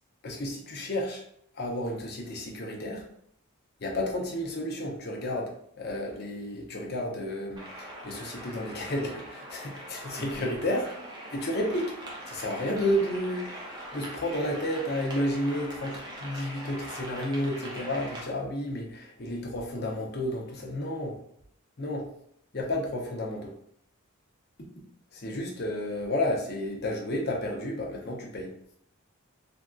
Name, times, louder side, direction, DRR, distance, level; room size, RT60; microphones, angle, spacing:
voice 1, 0.2-1.2 1.5-3.0 3.8-10.9 11.3-11.9 12.3-21.2 21.8-22.1 22.5-23.5 25.1-28.5, left 1 dB, 45° left, 0 dB, 0.6 m, -31 dB
sound 1, 7.6-18.2, right 1 dB, 20° right, 0.6 m, -42 dB
3.5 x 2.6 x 2.3 m, 0.69 s
head